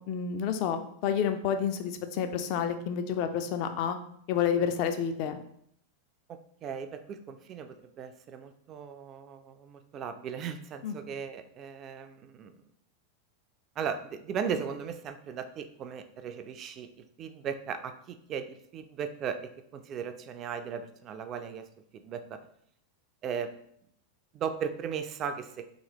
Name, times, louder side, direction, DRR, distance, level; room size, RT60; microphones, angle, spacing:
voice 1, 0.1-4.0 4.3-5.4 10.8-10.9, left 8 dB, 45° left, 8 dB, 0.4 m, -29 dB
voice 2, 6.3-12.6 13.8-21.7 21.9-22.4 23.2-23.5 24.3-25.7, right 7 dB, 30° right, 9 dB, 0.3 m, -37 dB
3.7 x 3.0 x 2.9 m, 0.69 s
figure-of-eight pair, 90°, 0 cm